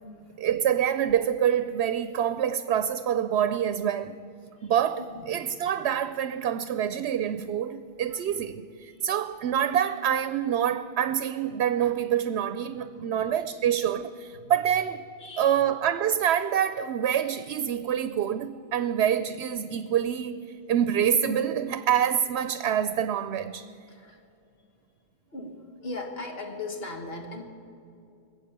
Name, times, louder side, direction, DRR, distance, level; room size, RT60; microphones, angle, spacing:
voice 1, 0.4-4.1 4.6-15.0 15.4-23.6, right 9 dB, 90° right, 0.8 m, -26 dB
voice 2, 15.2-15.6 23.9-24.2 25.3-27.5, left 2 dB, 70° left, 1.9 m, -38 dB
20.5 x 7.5 x 8.8 m
omnidirectional pair, 1.1 m